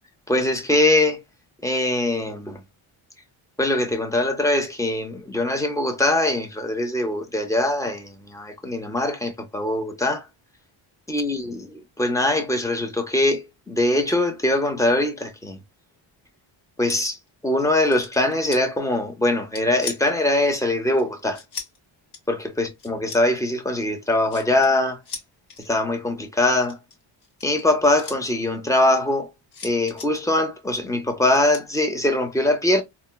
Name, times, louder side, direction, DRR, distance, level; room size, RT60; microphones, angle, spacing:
voice 1, 0.3-1.2 1.6-2.6 3.6-10.3 11.1-15.6 16.8-17.2 17.4-21.4 22.3-25.0 25.6-26.8 27.4-29.3 29.6-32.8, left 1 dB, 5° left, 0.6 m, -22 dB
sound 1, 16.9-17.3 17.6-18.6 19.3-20.2 21.0-21.8 22.1-22.3 22.8-23.2 23.8-24.7 25.1-25.7 26.5-28.2 29.5-30.1 31.3-31.6, left 5 dB, 50° left, 1.0 m, -37 dB
4.2 x 2.2 x 2.2 m
wide cardioid pair, 140°, 49 cm